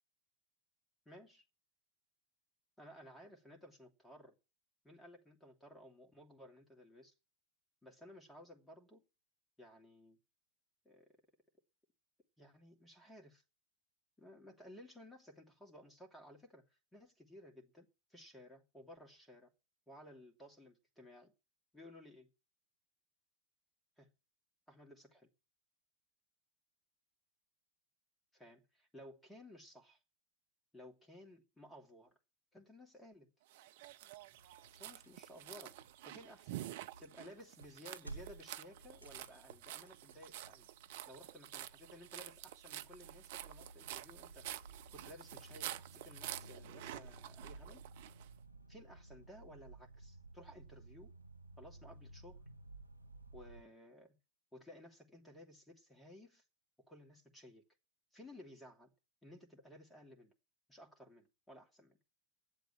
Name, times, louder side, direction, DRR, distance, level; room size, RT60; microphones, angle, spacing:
voice 1, 1.0-1.4 2.8-4.3 4.8-7.1 7.8-9.0 9.6-10.2 10.8-11.1 12.4-13.4 14.2-19.5 19.9-21.3 21.7-22.3 24.0-24.1 24.7-25.3 28.3-30.0 30.7-32.2 32.5-33.3 34.8-35.8 36.0-36.6 37.0-40.7 41.1-44.5 44.9-47.9 48.7-51.1 51.6-52.4 53.3-54.2 54.5-56.4 56.9-57.6 58.1-58.9 59.2-60.3 60.7-62.0, left 1 dB, 5° left, 2.7 m, -57 dB
sound 1, 33.5-48.3, right 14 dB, 55° right, 0.6 m, -49 dB
sound 2, 34.4-53.6, right 2 dB, 90° left, 0.9 m, -56 dB
10.5 x 7.8 x 8.4 m
figure-of-eight pair, 90°, 0 cm